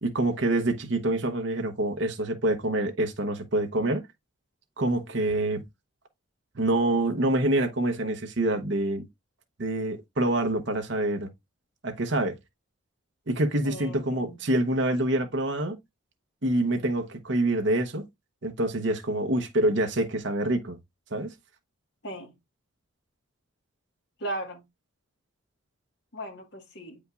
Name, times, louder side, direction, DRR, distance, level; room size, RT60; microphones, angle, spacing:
voice 1, 0.0-4.0 4.8-5.6 6.6-9.1 9.6-11.3 11.8-12.4 13.3-15.7 16.4-18.0 18.4-20.8 21.1-21.3, right 1 dB, 60° right, 0.9 m, -26 dB
voice 2, 13.6-14.4 22.0-22.3 24.2-24.6 26.1-27.0, right 1 dB, 55° left, 1.7 m, -37 dB
8.0 x 5.1 x 2.5 m
head